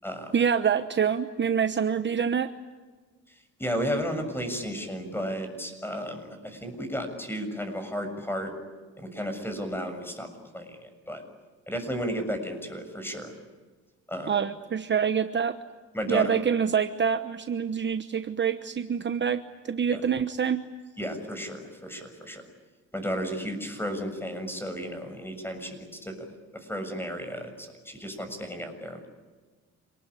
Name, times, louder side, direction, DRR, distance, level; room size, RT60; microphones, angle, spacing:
voice 1, 0.3-2.5 14.3-15.6 16.1-20.6, right 7 dB, 40° right, 10 dB, 1.1 m, -26 dB
voice 2, 3.6-8.5 9.0-10.3 10.5-11.2 11.7-13.3 14.1-14.3 15.9-16.3 19.9-20.0 21.0-22.4 22.9-26.1 26.5-29.1, equal, 5° left, 7 dB, 6.8 m, -33 dB
28.0 x 19.5 x 9.9 m, 1.4 s
cardioid pair, 90°, 30 cm